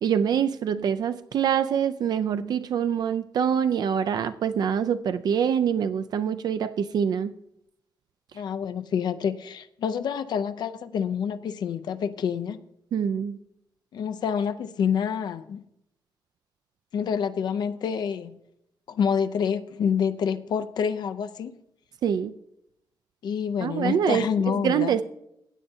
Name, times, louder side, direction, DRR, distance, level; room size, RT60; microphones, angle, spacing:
voice 1, 0.0-7.3 12.9-13.4 22.0-22.3 23.6-25.0, right 8 dB, 60° right, 0.3 m, -25 dB
voice 2, 8.3-12.6 13.9-15.6 16.9-18.4 18.9-21.5 23.2-25.0, left 7 dB, 65° left, 0.4 m, -27 dB
16.0 x 8.8 x 2.7 m
wide cardioid pair, 170°, 8 cm